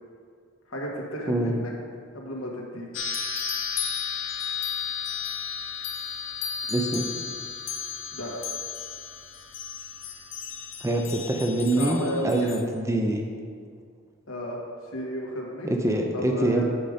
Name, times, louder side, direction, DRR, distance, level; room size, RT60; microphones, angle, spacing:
voice 1, 0.7-1.7 2.1-2.9 8.1-8.3 11.8-12.5 14.3-14.6 14.9-15.8 16.1-16.6, equal, 90° left, -2 dB, 1.5 m, -33 dB
sound 1, 2.9-12.6, left 7 dB, 70° left, 0.9 m, -33 dB
voice 2, 6.7-7.1 10.8-12.0 12.2-13.2 15.6-16.6, right 1 dB, 15° right, 2 dB, 0.6 m, -24 dB
7.8 x 5.1 x 5.1 m, 2.1 s
head